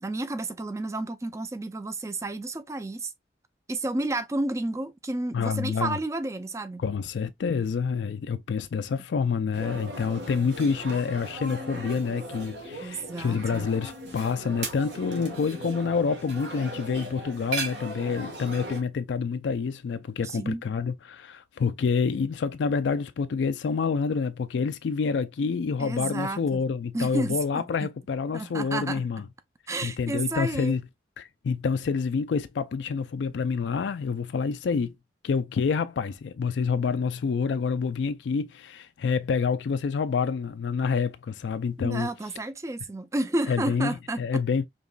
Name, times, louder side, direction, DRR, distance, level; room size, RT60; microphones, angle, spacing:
voice 1, 0.0-3.1 3.7-6.8 12.8-13.7 20.2-20.6 25.8-26.6 26.9-27.9 28.3-29.0 29.7-30.7 41.8-44.4, right 2 dB, 15° right, 0.4 m, -31 dB
voice 2, 5.3-6.0 6.8-29.2 29.8-30.8 31.2-34.9 35.2-42.1 43.5-44.7, left 5 dB, 80° left, 0.4 m, -27 dB
sound 1, 9.5-18.8, right 2 dB, 80° right, 1.4 m, -38 dB
5.2 x 3.0 x 2.3 m
head